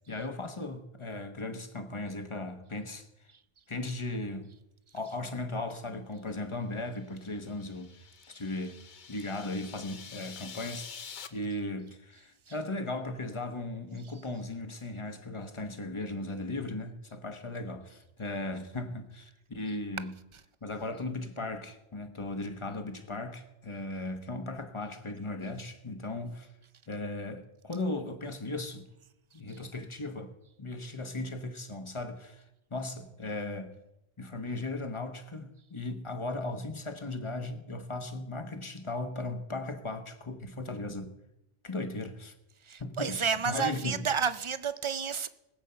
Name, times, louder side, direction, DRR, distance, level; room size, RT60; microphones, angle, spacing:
voice 1, 0.1-3.1 3.7-4.5 4.9-7.9 8.3-8.8 9.1-20.1 20.6-26.5 26.9-28.9 29.3-30.3 30.6-32.4 32.7-33.7 34.2-41.1 41.6-42.3 42.8-44.0, left 2 dB, 30° left, 1.1 m, -37 dB
sound 1, 7.1-11.3, left 6 dB, 50° left, 0.8 m, -47 dB
voice 2, 42.6-45.3, right 6 dB, 40° right, 0.4 m, -31 dB
19.5 x 8.2 x 5.7 m
omnidirectional pair, 1.1 m